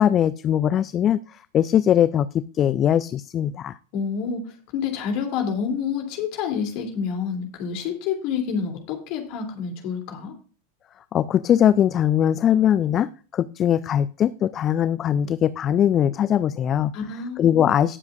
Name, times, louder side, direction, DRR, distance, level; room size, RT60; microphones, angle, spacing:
voice 1, 0.0-3.8 11.1-16.9 17.4-18.0, left 10 dB, 30° left, 16 dB, 0.4 m, -21 dB
voice 2, 3.9-10.3 16.9-17.7, left 6 dB, 45° left, 2 dB, 3.0 m, -28 dB
18.0 x 7.3 x 2.5 m, 0.38 s
figure-of-eight pair, 90°, 0 cm